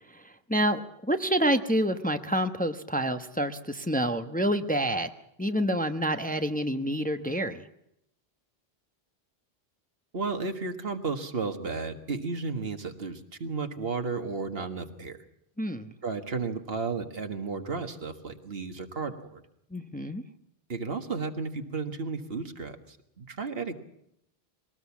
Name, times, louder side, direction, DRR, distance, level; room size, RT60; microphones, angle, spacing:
voice 1, 0.1-5.1 5.4-7.6 15.6-15.9 19.7-20.2, equal, 10° left, 8 dB, 0.9 m, -28 dB
voice 2, 10.1-15.2 16.0-19.4 20.7-23.7, right 4 dB, 70° right, 7 dB, 1.9 m, -33 dB
22.0 x 18.5 x 7.3 m, 0.77 s
omnidirectional pair, 1.0 m